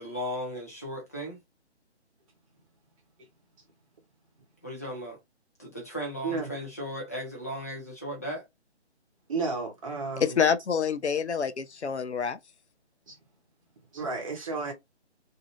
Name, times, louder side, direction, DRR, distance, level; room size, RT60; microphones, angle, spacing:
voice 1, 0.0-1.4 4.6-5.2 5.6-8.5, equal, 15° left, 0.5 m, -36 dB
voice 2, 9.3-10.4 13.1-13.2 13.9-14.7, right 4 dB, 30° right, 1.0 m, -32 dB
voice 3, 10.2-12.4, left 6 dB, 75° left, 0.6 m, -27 dB
2.6 x 2.4 x 2.9 m
figure-of-eight pair, 145°, 34 cm